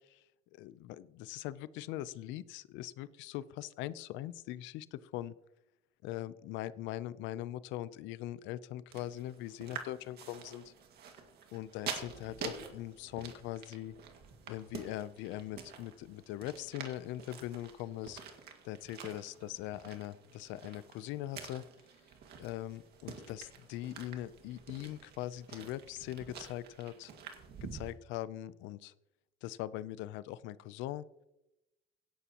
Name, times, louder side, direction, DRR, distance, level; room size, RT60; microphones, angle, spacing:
voice 1, 0.5-5.3 6.0-10.6 11.5-13.9 14.5-18.2 18.6-21.6 22.4-27.1 27.7-28.9 29.4-31.0, left 14 dB, 80° left, 16 dB, 0.6 m, -41 dB
sound 1, 8.9-27.9, right 6 dB, 60° right, 2.1 m, -48 dB
17.0 x 11.0 x 3.0 m, 0.92 s
cardioid pair, 135°, 19 cm